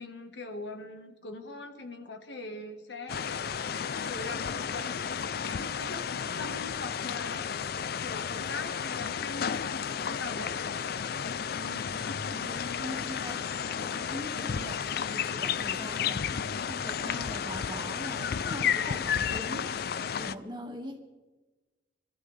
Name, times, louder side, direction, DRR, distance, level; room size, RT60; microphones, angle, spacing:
voice 1, 0.0-3.4 4.0-5.1 5.3-7.5 8.0-10.6 12.5-13.0, left 2 dB, 85° left, 7 dB, 1.4 m, -42 dB
sound 1, 3.1-20.3, left 7 dB, 60° left, 0.4 m, -32 dB
voice 2, 11.5-12.0 12.3-21.0, equal, 25° right, 1 dB, 2.0 m, -42 dB
24.5 x 13.0 x 3.3 m, 1.2 s
head